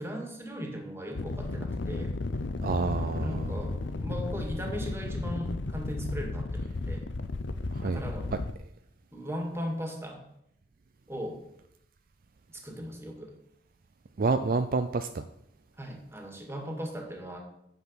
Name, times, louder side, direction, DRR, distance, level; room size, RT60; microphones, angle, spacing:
voice 1, 0.0-2.1 2.6-7.1 7.8-8.3 9.1-10.2 11.1-11.4 12.5-13.3 15.8-17.4, equal, 15° right, 2 dB, 2.1 m, -38 dB
sound 1, 1.1-8.5, left 2 dB, 85° left, 0.7 m, -34 dB
voice 2, 2.6-3.5 7.7-8.0 14.2-15.3, right 3 dB, 50° right, 9 dB, 0.5 m, -28 dB
9.1 x 8.0 x 5.7 m, 0.77 s
head